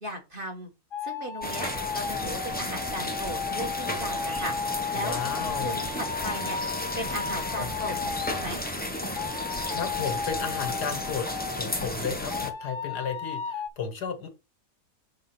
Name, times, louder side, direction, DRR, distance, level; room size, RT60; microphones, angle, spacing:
voice 1, 0.0-0.7 1.0-4.5 4.9-6.6 6.9-8.6, equal, 35° right, 1 dB, 1.6 m, -37 dB
sound 1, 0.9-8.5 9.1-11.8 12.3-13.7, left 6 dB, 55° left, 0.6 m, -34 dB
sound 2, 1.4-12.5, left 1 dB, 10° left, 0.6 m, -33 dB
voice 2, 4.9-5.8 7.6-7.7 9.7-11.3 11.6-14.3, left 6 dB, 75° left, 8 dB, 1.7 m, -33 dB
5.8 x 3.8 x 5.8 m, 0.28 s
omnidirectional pair, 1.8 m